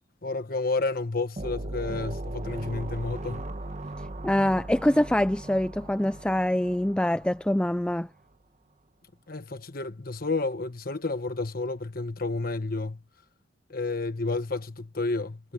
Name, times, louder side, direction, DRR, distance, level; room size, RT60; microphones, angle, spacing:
voice 1, 0.2-3.5 9.3-13.0 13.7-15.5, left 3 dB, 50° left, 1.3 m, -31 dB
sound 1, 1.4-7.8, right 1 dB, 40° right, 1.1 m, -38 dB
voice 2, 4.2-8.1, left 1 dB, 5° left, 0.3 m, -24 dB
head